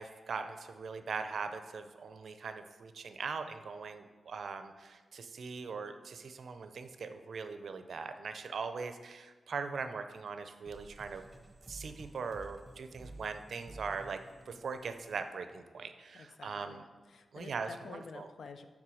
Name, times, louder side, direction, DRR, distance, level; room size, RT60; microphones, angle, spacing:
voice 1, 0.0-11.2 11.7-14.2 14.5-16.8 17.3-18.3, right 5 dB, 65° right, 8 dB, 0.5 m, -41 dB
voice 2, 9.5-9.8 16.1-18.7, left 4 dB, 70° left, 8 dB, 0.5 m, -50 dB
sound 1, 10.7-16.0, right 2 dB, 20° right, 0.7 m, -53 dB
7.5 x 3.6 x 6.2 m, 1.4 s
wide cardioid pair, 165°, 0 cm